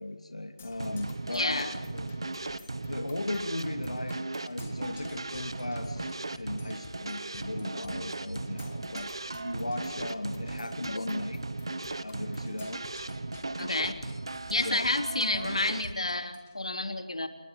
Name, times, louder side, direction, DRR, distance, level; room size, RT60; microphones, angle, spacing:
voice 1, 0.0-2.1 2.9-11.4 12.0-12.8 14.6-14.9, left 1 dB, 85° left, 6 dB, 2.9 m, -37 dB
Percussion, 0.6-16.6, left 4 dB, 15° left, 1.7 m, -51 dB
sound 1, 0.8-15.9, right 2 dB, 50° right, 1.4 m, -37 dB
voice 2, 1.3-1.7 10.9-11.1 13.6-14.0 14.5-17.3, left 2 dB, 65° left, 6 dB, 3.3 m, -30 dB
28.5 x 22.5 x 7.5 m, 1.0 s
figure-of-eight pair, 175°, 3 cm